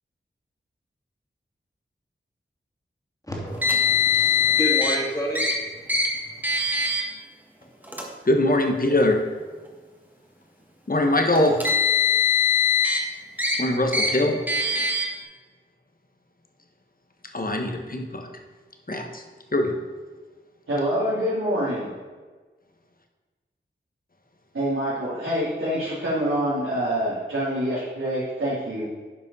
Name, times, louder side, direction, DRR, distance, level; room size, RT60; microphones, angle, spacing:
voice 1, 3.3-5.5, right 1 dB, 15° left, -2 dB, 2.5 m, -30 dB
Car, 3.6-5.0 5.3-5.5 5.9-6.1 6.4-7.0 7.8-8.0 9.0-9.1 11.4-13.0 13.4-13.6 13.9-14.1 14.5-15.0, left 5 dB, 10° right, 1.6 m, -21 dB
voice 2, 8.3-9.2 10.9-11.6 13.6-14.4 17.3-18.3 18.9-19.2 19.5-19.8, left 1 dB, 45° left, 4 dB, 1.3 m, -22 dB
voice 3, 20.7-21.9 24.5-28.9, equal, 90° right, -10 dB, 2.9 m, -26 dB
10.0 x 5.5 x 5.5 m, 1.4 s
wide cardioid pair, 55°, 21 cm